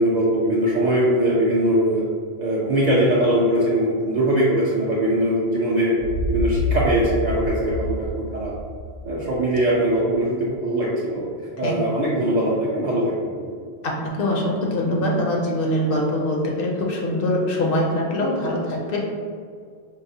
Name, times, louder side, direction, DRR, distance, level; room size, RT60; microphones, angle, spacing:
voice 1, 0.0-2.0 2.4-6.0 6.3-8.5 9.0-11.2 11.6-13.5, right 1 dB, 55° right, -7 dB, 0.5 m, -21 dB
sound 1, 6.0-9.8, left 1 dB, 75° right, 0.8 m, -27 dB
voice 2, 13.8-19.0, left 1 dB, 65° left, -2 dB, 0.7 m, -23 dB
4.6 x 2.1 x 2.6 m, 2.1 s
omnidirectional pair, 1.1 m